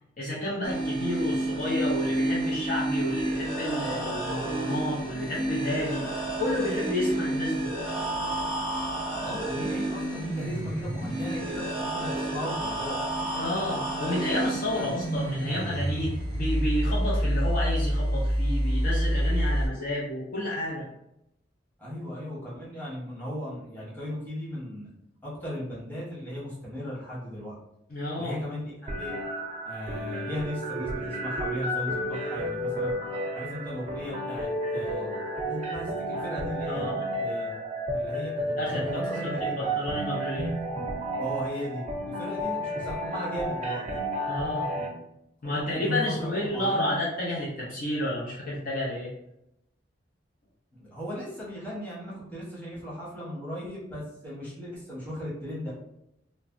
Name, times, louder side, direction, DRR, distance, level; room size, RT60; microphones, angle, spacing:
voice 1, 0.2-7.7 13.3-20.9 27.9-28.4 36.7-37.1 38.6-40.5 44.3-44.7 45.4-49.1, left 1 dB, 50° left, -5 dB, 0.6 m, -31 dB
sound 1, 0.6-19.7, right 1 dB, 70° left, 1.5 m, -29 dB
voice 2, 9.1-13.0 14.7-14.9 21.8-24.9 25.2-27.5 28.2-29.1 29.6-32.9 33.3-35.1 35.5-37.5 37.9-39.8 41.2-43.9 45.4-46.9 50.7-55.7, equal, 10° left, -7 dB, 1.0 m, -36 dB
sound 2, 28.9-44.9, right 1 dB, 35° right, 0.5 m, -32 dB
3.2 x 2.1 x 2.5 m, 0.82 s
head